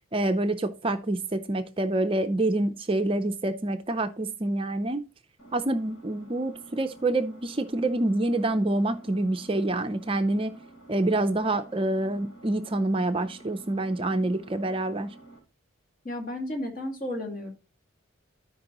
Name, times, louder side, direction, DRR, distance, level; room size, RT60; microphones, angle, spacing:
voice 1, 0.1-5.0 5.5-10.6 10.9-15.1, right 2 dB, 25° right, 0.5 m, -27 dB
Engine, 5.4-15.4, right 2 dB, 70° left, 4.1 m, -50 dB
voice 2, 16.0-17.5, left 1 dB, 40° left, 2.0 m, -33 dB
13.5 x 5.2 x 3.0 m
head